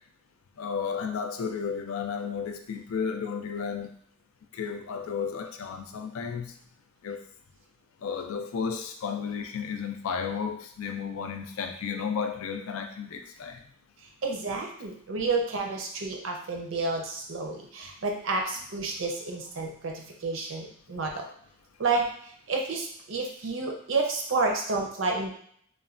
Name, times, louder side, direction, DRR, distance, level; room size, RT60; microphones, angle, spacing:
voice 1, 0.6-3.9 4.5-6.5 7.0-7.2 8.0-13.6, left 6 dB, 80° left, 6 dB, 0.4 m, -33 dB
voice 2, 14.2-21.3 21.8-22.1 22.5-25.3, right 3 dB, 65° right, 2 dB, 0.5 m, -30 dB
3.0 x 2.2 x 2.4 m, 0.63 s
head